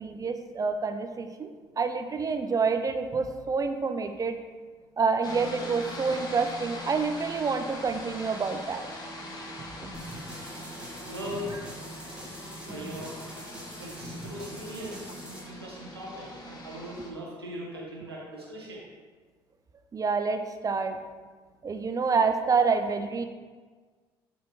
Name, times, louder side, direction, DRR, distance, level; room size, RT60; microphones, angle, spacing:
voice 1, 0.0-1.5 1.8-4.4 5.0-8.9 9.6-9.9 19.9-21.0 21.6-23.2, right 5 dB, 30° right, 7 dB, 0.6 m, -28 dB
sound 1, 5.2-17.1, left 1 dB, 30° left, 1.7 m, -42 dB
sound 2, 9.9-15.4, equal, 10° right, 1.9 m, -43 dB
voice 2, 11.1-11.5 12.6-18.9, equal, 85° right, -4 dB, 1.3 m, -40 dB
9.2 x 4.3 x 3.1 m, 1.4 s
figure-of-eight pair, 55°, 13 cm